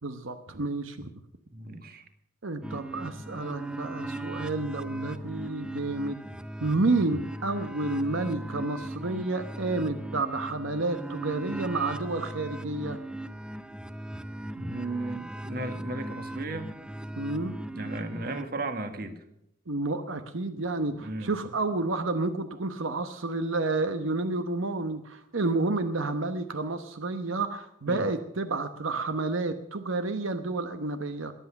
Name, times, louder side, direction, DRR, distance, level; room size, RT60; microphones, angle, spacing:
voice 1, 0.0-1.1 2.4-6.2 6.6-13.0 17.2-17.5 19.7-31.3, right 3 dB, 85° right, 9 dB, 1.0 m, -30 dB
voice 2, 1.5-2.0 14.6-16.7 17.7-19.2 20.9-21.3 27.9-28.0, right 2 dB, 50° right, 8 dB, 1.6 m, -35 dB
sound 1, 2.6-18.4, right 1 dB, 5° right, 0.5 m, -38 dB
21.5 x 8.3 x 7.0 m, 0.79 s
head